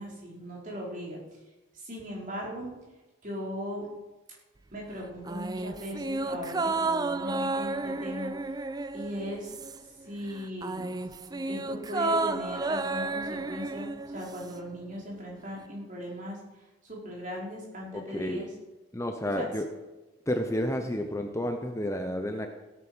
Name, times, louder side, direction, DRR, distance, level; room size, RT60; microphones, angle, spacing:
voice 1, 0.0-1.4 1.7-2.7 3.2-3.9 4.7-8.6 8.9-10.9 11.4-18.5 19.2-19.4 20.8-20.9, equal, 40° right, -3 dB, 4.7 m, -38 dB
sound 1, 5.3-10.0 10.3-14.6 14.9-15.0, right 3 dB, 20° right, 0.4 m, -32 dB
voice 2, 17.9-18.5 18.9-19.7 20.3-22.5, equal, 15° left, 5 dB, 0.8 m, -31 dB
16.5 x 9.3 x 6.3 m, 1.1 s
head